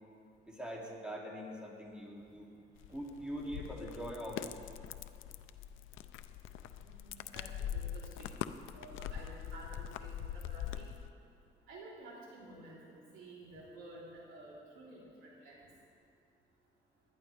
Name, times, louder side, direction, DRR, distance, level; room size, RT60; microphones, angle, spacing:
voice 1, 0.4-2.5 2.9-4.6, equal, 5° right, -3 dB, 2.6 m, -43 dB
sound 1, 2.8-11.1, left 10 dB, 85° left, 0.5 m, -43 dB
voice 2, 6.8-8.4 8.7-10.9 11.7-15.7, right 2 dB, 90° right, -5 dB, 3.6 m, -52 dB
19.5 x 11.5 x 3.4 m, 2.4 s
cardioid pair, 90°, 20 cm